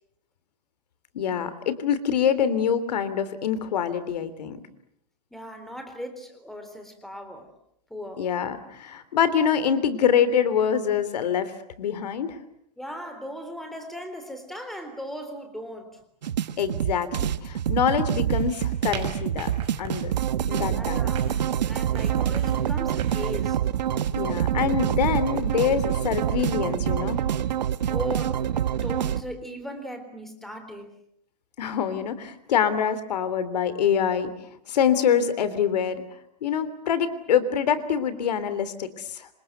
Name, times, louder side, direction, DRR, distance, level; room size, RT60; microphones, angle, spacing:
voice 1, 1.1-4.6 8.2-11.5 11.8-12.4 16.6-19.5 19.8-20.1 20.4-21.1 24.1-27.2 31.6-34.3 34.7-36.0 36.4-39.3, left 8 dB, 70° left, 14 dB, 3.2 m, -25 dB
voice 2, 5.3-7.5 7.9-8.2 12.8-15.9 20.6-21.2 21.6-23.6 27.9-30.9, equal, ahead, 6 dB, 3.7 m, -37 dB
sound 1, 16.2-29.2, right 10 dB, 85° right, 1.4 m, -26 dB
sound 2, 18.3-23.3, right 7 dB, 25° right, 6.2 m, -39 dB
27.5 x 27.0 x 8.0 m, 0.72 s
hypercardioid pair, 160°, 21 cm